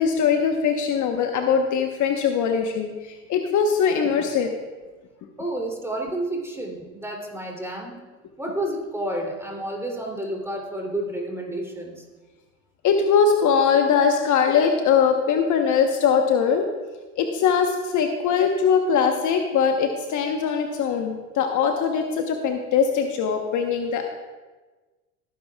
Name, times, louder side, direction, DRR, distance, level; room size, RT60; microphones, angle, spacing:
voice 1, 0.0-4.5 12.8-16.7 17.2-24.1, left 6 dB, 45° left, 4 dB, 1.1 m, -21 dB
voice 2, 5.4-8.0 8.4-12.0, right 1 dB, 5° right, -1 dB, 2.9 m, -30 dB
18.5 x 10.5 x 2.3 m, 1.3 s
hypercardioid pair, 90°, 43 cm